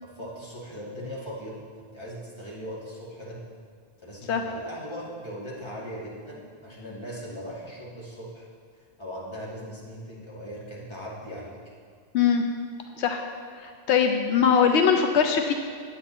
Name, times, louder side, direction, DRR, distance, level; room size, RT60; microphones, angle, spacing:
voice 1, 0.0-1.6 1.9-3.4 4.0-8.5 8.7-11.6, equal, 25° left, -6 dB, 2.1 m, -39 dB
voice 2, 13.6-15.5, left 7 dB, 85° left, 5 dB, 0.9 m, -21 dB
9.0 x 8.2 x 4.2 m, 2.2 s
omnidirectional pair, 1.1 m